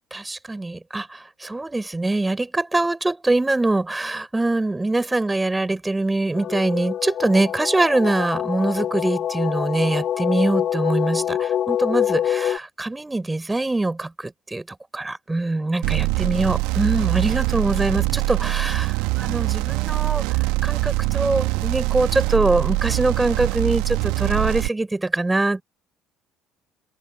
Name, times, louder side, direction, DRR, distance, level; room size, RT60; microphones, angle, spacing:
voice 1, 0.1-14.6 14.9-20.2 20.6-25.6, right 2 dB, 15° right, 6.2 m, -23 dB
sound 1, 6.3-12.6, left 10 dB, 50° left, 1.4 m, -25 dB
sound 2, 15.8-24.7, right 25 dB, 65° right, 2.2 m, -23 dB
figure-of-eight pair, 55°, 0 cm